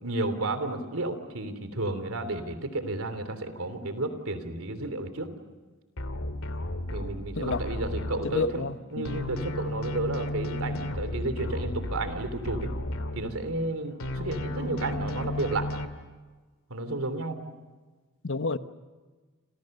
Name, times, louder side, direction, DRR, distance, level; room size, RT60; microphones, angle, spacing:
voice 1, 0.0-5.3 6.9-12.7 13.1-15.7 16.7-17.4, right 2 dB, 80° right, 3.2 m, -32 dB
sound 1, 6.0-8.8 9.1-13.7 14.0-15.9, left 1 dB, 80° left, 2.3 m, -34 dB
voice 2, 8.2-9.2 18.2-18.6, left 3 dB, 65° left, 1.1 m, -29 dB
29.5 x 27.5 x 6.7 m
head